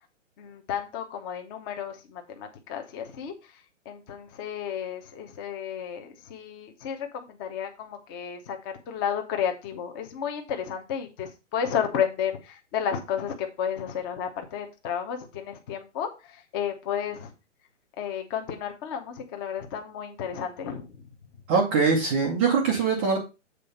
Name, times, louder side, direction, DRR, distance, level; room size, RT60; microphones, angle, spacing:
voice 1, 0.4-3.3 3.9-17.3 18.0-21.0, left 8 dB, 20° left, 4 dB, 0.9 m, -32 dB
voice 2, 21.5-23.2, right 5 dB, 10° right, 0 dB, 0.5 m, -22 dB
7.7 x 4.1 x 5.2 m, 0.28 s
hypercardioid pair, 150°, 36 cm